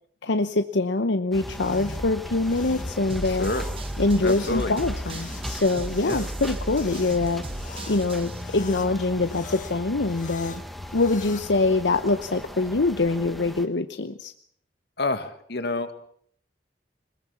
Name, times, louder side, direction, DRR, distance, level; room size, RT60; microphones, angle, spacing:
voice 1, 0.2-3.5 4.0-7.4 7.9-10.6 10.9-14.3, left 3 dB, 85° left, 9 dB, 0.9 m, -24 dB
sound 1, 1.3-11.5, left 2 dB, 45° left, 1.4 m, -39 dB
sound 2, 1.3-13.7, equal, ahead, 1.7 m, -38 dB
sound 3, 3.1-8.4, right 2 dB, 30° right, 0.9 m, -37 dB
voice 2, 3.2-3.6 4.2-4.7 6.0-6.3 15.0-16.0, left 2 dB, 65° left, 9 dB, 2.0 m, -28 dB
21.5 x 20.5 x 7.2 m, 0.64 s
head